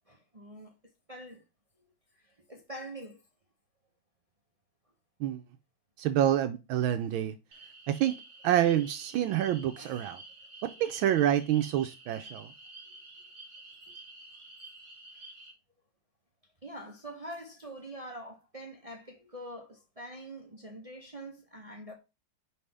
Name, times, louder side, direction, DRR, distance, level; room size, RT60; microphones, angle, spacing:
voice 1, 0.1-0.7 1.1-1.4 2.2-3.2 9.8-10.1 15.1-15.2 16.6-21.9, right 1 dB, 45° right, 0.4 m, -45 dB
voice 2, 6.0-7.3 7.9-8.2 8.4-10.2 10.6-12.5, right 11 dB, 80° right, 1.4 m, -27 dB
sound 1, 7.5-15.5, right 2 dB, 30° right, 1.7 m, -50 dB
5.6 x 5.1 x 3.3 m
omnidirectional pair, 2.2 m